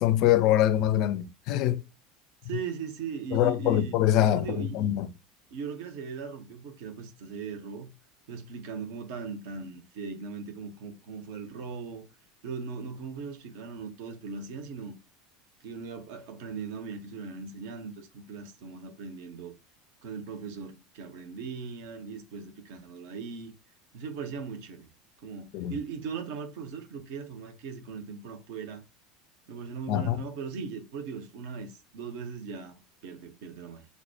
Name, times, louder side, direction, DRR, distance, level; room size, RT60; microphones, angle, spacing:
voice 1, 0.0-1.8 3.3-5.1 25.5-25.7 29.9-30.2, left 12 dB, 50° left, 0.4 m, -24 dB
voice 2, 2.4-4.0 4.3-4.9 5.5-7.9 8.3-12.0 12.4-15.0 15.6-19.5 20.0-23.5 23.9-24.9 25.2-28.8 29.5-33.9, right 5 dB, 55° right, 0.8 m, -39 dB
6.1 x 2.1 x 2.8 m
figure-of-eight pair, 75°, 0 cm